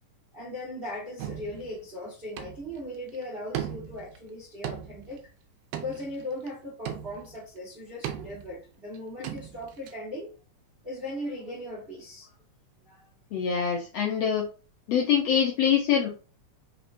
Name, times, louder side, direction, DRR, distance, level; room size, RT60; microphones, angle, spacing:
voice 1, 0.3-5.3 5.7-10.3 10.8-12.3 12.8-13.1, left 1 dB, 35° right, 0.9 m, -38 dB
sound 1, 1.2-1.8 2.4-2.8 3.1-3.2 3.5-4.2 4.6-5.2 5.7-6.5 6.9-7.4 8.0-8.6 8.9-9.0 9.2-9.9, right 10 dB, 90° right, 2.1 m, -37 dB
voice 2, 13.3-14.5 14.9-16.1, left 8 dB, 70° left, 1.6 m, -24 dB
5.0 x 3.3 x 2.6 m
omnidirectional pair, 3.6 m